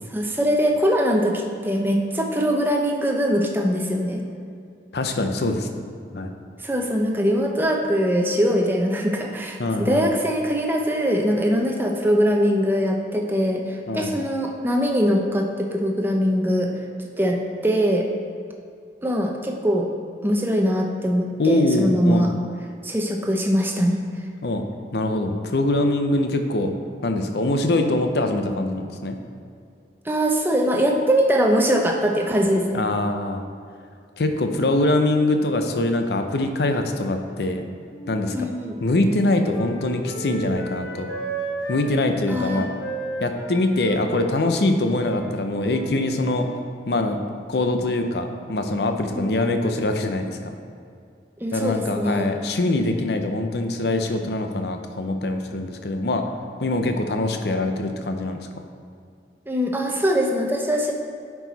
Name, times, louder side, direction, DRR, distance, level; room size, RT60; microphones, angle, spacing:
voice 1, 0.1-4.2 6.6-16.7 17.2-17.4 17.6-18.1 19.0-19.9 20.2-22.3 22.8-24.0 30.0-32.8 38.3-38.8 42.3-42.6 49.1-49.6 51.4-52.3 59.5-60.9, equal, 10° right, 1 dB, 0.6 m, -22 dB
voice 2, 4.9-6.3 9.6-10.0 13.9-14.1 21.4-22.3 24.4-24.6 24.9-26.7 27.0-29.2 32.7-33.4 34.2-37.6 38.1-38.5 38.8-41.1 41.7-42.7 43.2-46.5 46.9-47.2 47.5-50.6 51.5-56.2 56.6-58.5, left 2 dB, 70° left, 5 dB, 0.6 m, -23 dB
Wind instrument woodwind instrument, 37.9-41.9 42.2-46.7, right 2 dB, 90° left, 1.8 m, -34 dB
9.9 x 4.7 x 4.0 m, 2.4 s
head